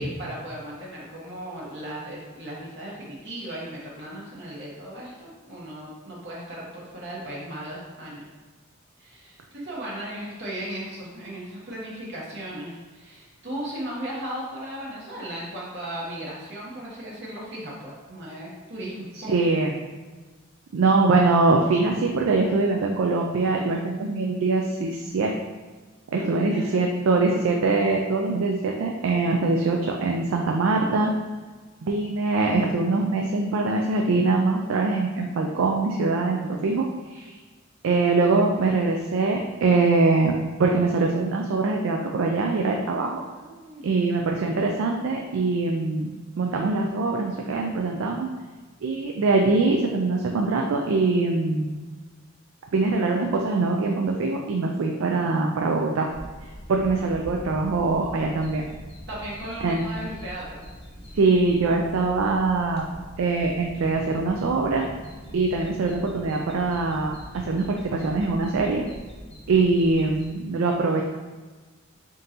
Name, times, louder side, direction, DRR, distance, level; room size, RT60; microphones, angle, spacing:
voice 1, 0.0-8.2 9.0-19.3 26.1-26.8 43.3-44.0 59.1-60.6, right 1 dB, 60° right, -5 dB, 1.0 m, -36 dB
voice 2, 19.1-19.7 20.7-25.3 26.1-31.1 31.8-37.4 37.8-40.3 40.6-43.2 43.8-46.1 46.4-48.3 48.8-51.8 52.7-56.1 56.4-58.6 59.6-59.8 61.1-62.9 63.2-64.9 65.3-68.8 69.5-71.0, right 3 dB, 75° right, 1 dB, 0.4 m, -23 dB
sound 1, 56.1-70.3, equal, 30° left, 0.8 m, -42 dB
3.8 x 3.7 x 2.8 m, 1.3 s
head